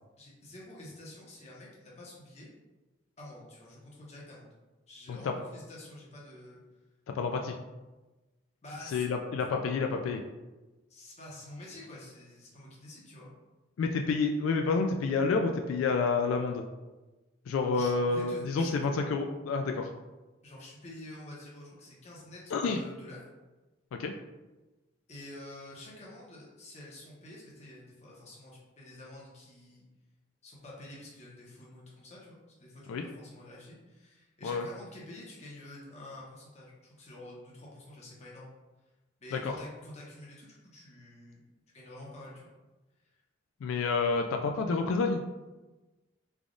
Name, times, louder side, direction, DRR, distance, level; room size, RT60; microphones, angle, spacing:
voice 1, 0.2-2.5 3.2-4.5 4.9-6.6 8.6-9.1 10.9-13.3 17.7-18.7 20.4-23.2 25.1-29.8 30.4-38.5 39.2-41.4 41.7-42.5 43.0-43.2, left 1 dB, 35° left, -5 dB, 0.9 m, -48 dB
voice 2, 7.1-7.6 8.9-10.2 13.8-16.6 17.5-19.9 22.5-22.8 23.9-24.1 32.9-33.0 34.4-34.7 39.3-39.5 43.6-45.2, left 4 dB, 85° left, 4 dB, 0.3 m, -29 dB
3.4 x 2.4 x 3.7 m, 1.1 s
head